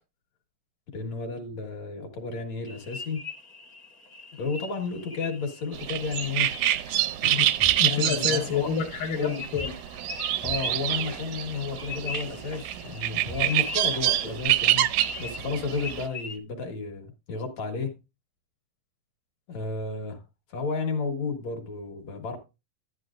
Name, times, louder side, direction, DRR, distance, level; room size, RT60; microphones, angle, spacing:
voice 1, 0.9-3.2 4.3-6.5 7.2-7.4 7.8-8.7 9.2-9.4 10.4-14.9 15.2-18.0 19.5-20.2 20.5-22.4, left 4 dB, 55° left, 2.5 m, -32 dB
sound 1, 2.7-16.4, left 5 dB, 40° left, 1.5 m, -42 dB
sound 2, 5.7-16.1, right 14 dB, 80° right, 1.8 m, -27 dB
sound 3, 6.9-7.0 7.6-7.8 8.3-8.4 9.5-9.8 10.4-11.5 11.8-11.9 12.2-12.3 12.5-12.6 12.9-13.0 13.2-13.7 13.9-14.0 14.3-14.4 14.6-14.7, right 2 dB, 15° left, 1.0 m, -41 dB
voice 2, 7.4-9.7, left 7 dB, 75° left, 2.6 m, -29 dB
11.5 x 11.0 x 2.5 m
omnidirectional pair, 4.0 m